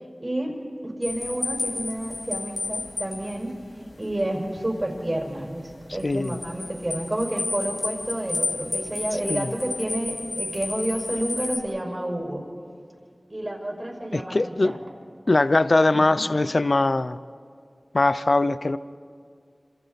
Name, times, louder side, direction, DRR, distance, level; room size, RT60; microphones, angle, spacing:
voice 1, 0.2-0.5 0.8-3.5 4.0-12.4 13.3-14.8 15.9-16.2, right 1 dB, 35° right, -1 dB, 5.5 m, -30 dB
sound 1, 1.0-11.6, left 2 dB, 85° left, 2.1 m, -32 dB
voice 2, 6.0-6.4 9.3-9.5 14.1-14.8 15.3-17.2 17.9-18.8, left 2 dB, 60° left, 14 dB, 0.6 m, -21 dB
27.5 x 27.0 x 4.1 m, 2.2 s
wide cardioid pair, 50°, 0 cm